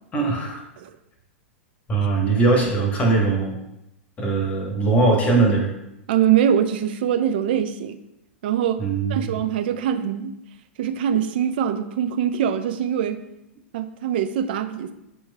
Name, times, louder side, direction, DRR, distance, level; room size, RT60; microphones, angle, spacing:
voice 1, 0.1-0.6 1.9-3.6 4.2-5.7 8.8-9.4, right 3 dB, 20° left, 1 dB, 0.9 m, -20 dB
voice 2, 6.1-8.0 8.4-8.8 9.1-10.3 10.8-13.2 13.7-14.9, right 9 dB, 50° right, 9 dB, 0.4 m, -23 dB
7.3 x 3.0 x 2.2 m, 0.87 s
figure-of-eight pair, 100°, 7 cm